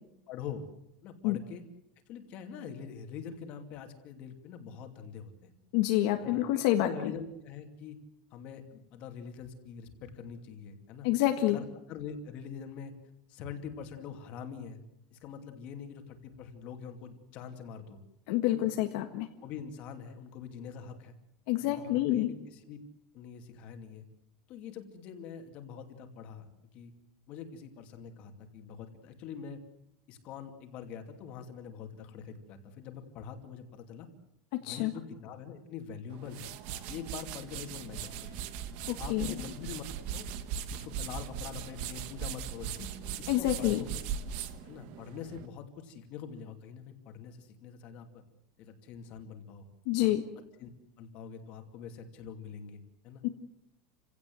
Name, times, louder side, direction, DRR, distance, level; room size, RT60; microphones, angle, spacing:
voice 1, 0.3-0.6 1.0-1.6 2.1-5.5 6.2-8.0 8.3-11.1 11.5-12.9 13.3-14.8 15.1-18.0 18.5-18.7 19.4-21.2 21.6-22.8 23.1-24.0 24.5-26.5 26.7-26.9 27.3-29.6 30.1-34.1 34.6-36.5 36.9-38.5 38.9-40.3 40.7-42.9 43.2-43.9 44.6-48.2 48.6-49.7 50.0-50.1 50.6-50.7 51.0-53.2, left 7 dB, 35° left, 6 dB, 2.6 m, -44 dB
voice 2, 5.7-7.1 11.0-11.6 18.3-19.3 21.5-22.3 34.6-34.9 39.1-39.3 43.3-43.8 49.9-50.2 53.2-53.3, left 14 dB, 55° left, 5 dB, 1.6 m, -27 dB
sound 1, 36.1-45.5, right 8 dB, 45° right, 1.4 m, -39 dB
29.0 x 17.0 x 7.8 m, 0.82 s
supercardioid pair, 180°, 4 cm